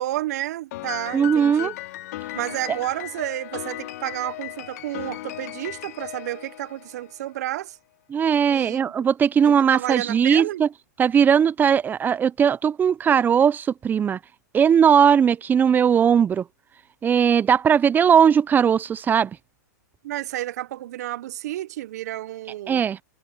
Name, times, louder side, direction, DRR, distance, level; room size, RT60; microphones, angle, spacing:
voice 1, 0.0-1.7 2.3-7.8 8.5-8.9 9.4-10.6 20.0-22.8, right 14 dB, 60° right, 1.3 m, -31 dB
Piano, 0.7-7.2, left 16 dB, 60° left, 3.5 m, -36 dB
voice 2, 1.1-1.7 8.1-10.7 11.0-14.2 14.5-16.4 17.0-19.3 22.7-23.0, right 7 dB, 20° right, 0.8 m, -19 dB
hypercardioid pair, 115°, 10 cm